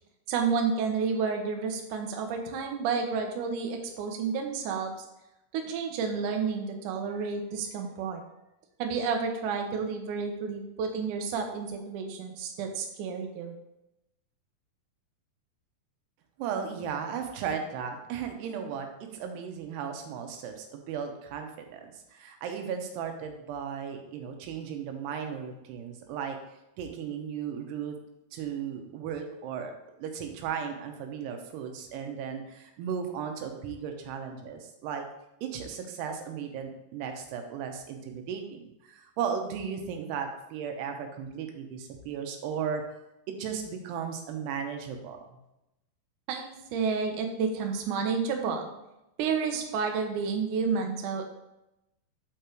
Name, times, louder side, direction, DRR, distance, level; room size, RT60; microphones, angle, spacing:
voice 1, 0.3-4.9 5.5-8.2 8.8-13.5 46.3-48.7 49.2-51.2, right 5 dB, 75° right, 3 dB, 1.9 m, -30 dB
voice 2, 16.4-18.9 19.1-26.4 26.8-28.0 28.3-29.7 30.0-35.0 35.4-42.8 43.3-45.2, right 7 dB, 90° right, 4 dB, 3.0 m, -35 dB
5.8 x 5.3 x 4.4 m, 0.89 s
omnidirectional pair, 4.6 m